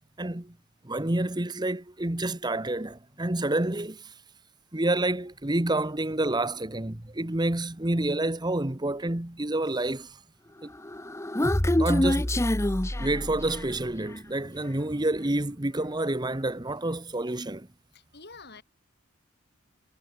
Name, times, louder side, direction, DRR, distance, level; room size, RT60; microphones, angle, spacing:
voice 1, 0.2-0.5 0.8-4.0 4.7-10.1 10.6-10.7 11.7-12.3 13.0-17.7, right 1 dB, 20° right, 1.2 m, -28 dB
Human voice, 10.8-13.8, left 1 dB, 15° left, 1.0 m, -26 dB
voice 2, 17.9-18.6, left 4 dB, 50° left, 7.6 m, -47 dB
head